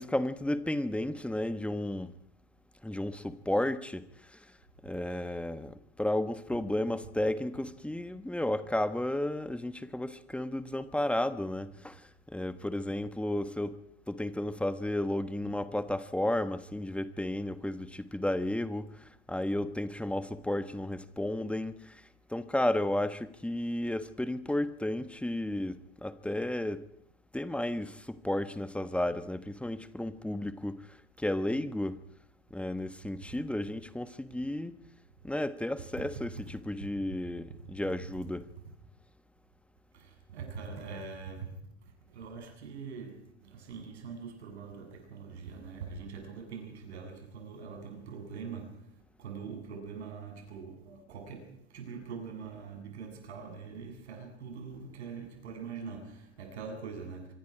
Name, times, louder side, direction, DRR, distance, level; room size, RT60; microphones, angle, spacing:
voice 1, 0.0-2.1 2.8-4.4 4.8-13.8 14.1-22.0 22.3-26.9 27.3-32.0 32.5-34.8 35.2-38.5, left 1 dB, 5° left, 1.3 m, -33 dB
voice 2, 39.9-57.3, right 5 dB, 70° right, 7.9 m, -43 dB
26.0 x 24.5 x 5.0 m
hypercardioid pair, 90°, 34 cm